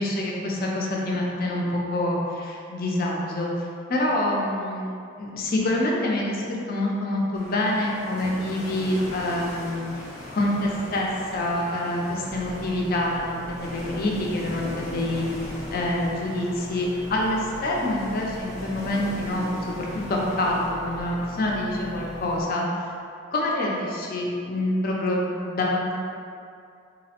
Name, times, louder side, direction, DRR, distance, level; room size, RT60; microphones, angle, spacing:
voice 1, 0.0-3.5 3.9-4.9 5.2-10.0 10.3-19.5 19.8-22.6 23.3-26.0, left 1 dB, 45° left, -2 dB, 0.4 m, -26 dB
sound 1, 7.3-20.7, left 1 dB, 15° left, 0.7 m, -40 dB
sound 2, 12.3-22.4, equal, 35° right, 0.4 m, -41 dB
4.0 x 2.0 x 2.8 m, 2.4 s
head